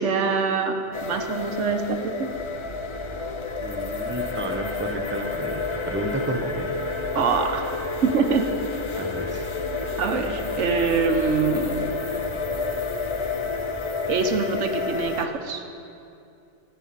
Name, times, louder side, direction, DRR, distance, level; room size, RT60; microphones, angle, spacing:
voice 1, 0.0-2.3 7.1-7.6 8.0-8.5 10.0-12.0 14.1-15.6, right 5 dB, 90° right, 6 dB, 1.3 m, -24 dB
sound 1, 0.9-15.3, left 4 dB, 40° left, 0.4 m, -30 dB
sound 2, 2.3-13.6, right 2 dB, 80° left, 2.0 m, -41 dB
voice 2, 3.6-6.9 9.0-9.5, right 1 dB, 10° right, 4 dB, 0.8 m, -32 dB
14.0 x 5.8 x 9.4 m, 2.5 s
omnidirectional pair, 1.2 m